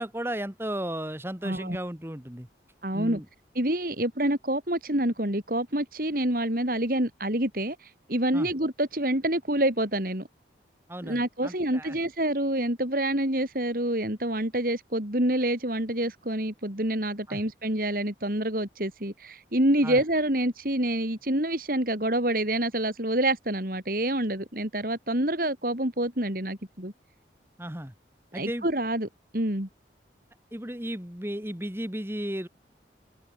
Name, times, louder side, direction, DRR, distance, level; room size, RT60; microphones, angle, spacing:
voice 1, 0.0-2.5 2.9-3.3 8.3-8.5 10.9-12.0 17.3-17.4 19.8-20.0 27.6-27.9 28.3-28.7 30.5-32.5, right 1 dB, 15° right, 2.3 m, -34 dB
voice 2, 1.4-1.8 2.8-3.2 3.6-10.3 11.0-26.9 28.3-29.1 29.3-29.7, right 1 dB, 50° right, 4.0 m, -27 dB
head